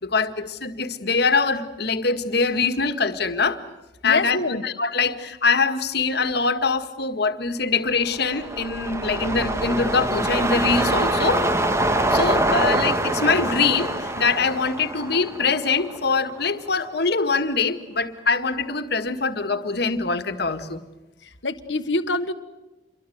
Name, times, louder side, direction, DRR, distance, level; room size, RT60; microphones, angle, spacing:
voice 1, 0.0-3.6 4.0-4.4 4.6-11.4 12.1-20.8, left 4 dB, 60° left, 8 dB, 1.8 m, -23 dB
voice 2, 4.0-4.6 21.2-22.3, left 2 dB, 75° left, 8 dB, 1.4 m, -25 dB
sound 1, 8.0-16.5 16.8-16.9, right 1 dB, 15° right, 1.5 m, -24 dB
27.5 x 23.0 x 8.0 m, 1.0 s
head